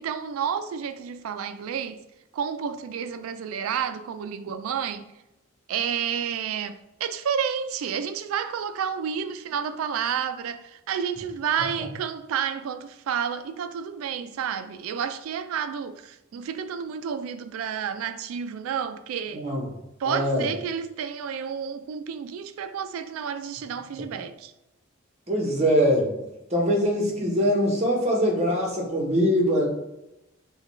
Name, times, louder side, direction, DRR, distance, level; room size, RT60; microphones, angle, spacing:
voice 1, 0.0-2.0 2.3-5.1 5.7-19.4 20.0-24.5, right 7 dB, 85° right, 0.3 m, -30 dB
voice 2, 19.3-19.6 20.0-20.5 25.3-26.2 26.5-29.7, equal, 30° right, 1.0 m, -23 dB
5.8 x 2.3 x 3.1 m
head